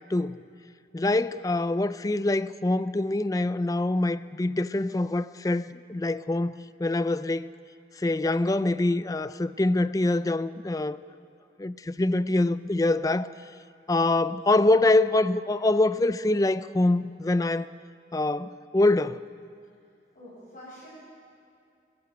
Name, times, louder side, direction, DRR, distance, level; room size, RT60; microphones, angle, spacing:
voice 1, 0.1-0.4 0.9-7.5 8.0-11.0 11.6-13.3 13.9-17.7 18.1-19.3, left 2 dB, 20° left, 0.4 m, -25 dB
voice 2, 20.1-20.9, left 1 dB, 45° left, 7.3 m, -46 dB
20.5 x 16.0 x 8.1 m
head